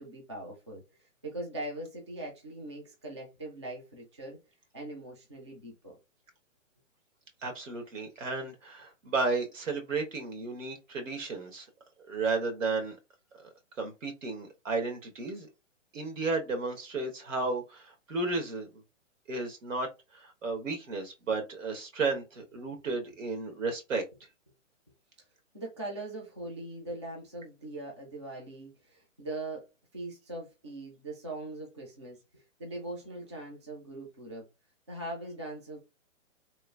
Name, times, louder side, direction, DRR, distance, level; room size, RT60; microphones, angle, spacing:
voice 1, 0.0-4.4 4.7-6.0 25.5-34.5 34.9-35.8, right 2 dB, 25° right, 0.3 m, -41 dB
voice 2, 7.4-11.7 12.1-13.0 13.4-13.5 13.8-15.5 15.9-18.7 19.3-19.9 20.1-24.0, right 3 dB, 75° right, 1.2 m, -33 dB
3.0 x 2.3 x 2.3 m
hypercardioid pair, 160°, 38 cm